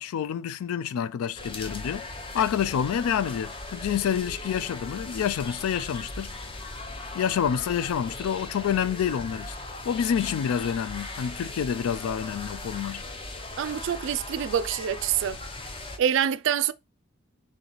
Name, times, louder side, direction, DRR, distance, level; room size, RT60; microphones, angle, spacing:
voice 1, 0.0-2.1 2.3-6.3 7.1-9.5 9.9-13.0, left 8 dB, 90° left, 0.3 m, -28 dB
sound 1, 1.4-16.0, left 2 dB, 25° left, 0.5 m, -38 dB
voice 2, 13.6-15.4 16.0-16.7, right 9 dB, 60° right, 0.3 m, -26 dB
3.2 x 3.0 x 3.9 m
head